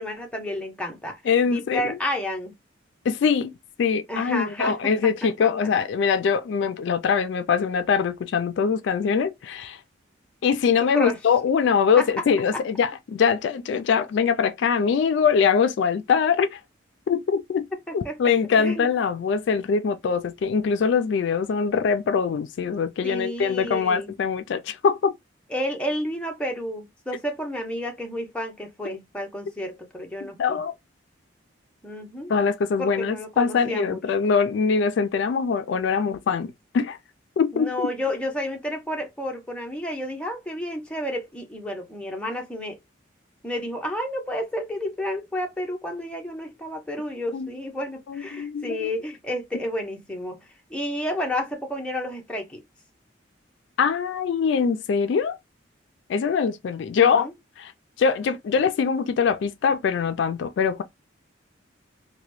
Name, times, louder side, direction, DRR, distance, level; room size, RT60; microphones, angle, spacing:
voice 1, 0.0-1.2 1.5-2.5 4.1-4.9 10.9-11.2 12.0-12.1 12.5-12.6 17.9-18.9 23.0-24.1 25.5-30.6 31.8-32.3 32.8-34.0 37.5-42.8 43.4-52.6 57.0-57.3, equal, 5° left, 0.6 m, -31 dB
voice 2, 1.3-2.0 3.1-9.8 10.4-16.6 17.1-17.6 17.9-25.1 30.2-30.7 32.3-37.0 37.4-37.9 47.3-47.5 48.1-48.9 53.8-55.4 56.1-57.3 57.6-57.7 58.0-60.8, left 6 dB, 70° left, 0.3 m, -23 dB
2.8 x 2.1 x 2.9 m
head